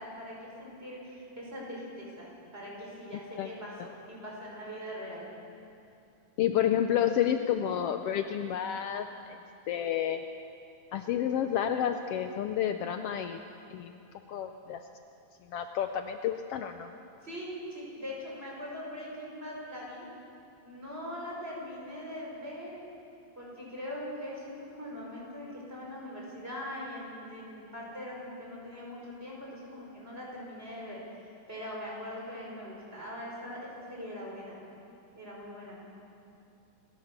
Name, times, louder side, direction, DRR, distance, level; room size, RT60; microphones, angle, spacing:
voice 1, 0.0-5.3 17.2-20.1 20.6-22.8 23.4-31.0 31.5-34.6 35.2-35.8, left 1 dB, 15° right, -4 dB, 5.8 m, -41 dB
voice 2, 6.4-9.4 9.7-10.2 10.9-13.4 13.7-13.9 14.3-14.8 15.5-16.9, left 10 dB, 85° left, 7 dB, 1.3 m, -30 dB
27.5 x 15.5 x 6.8 m, 2.7 s
omnidirectional pair, 3.6 m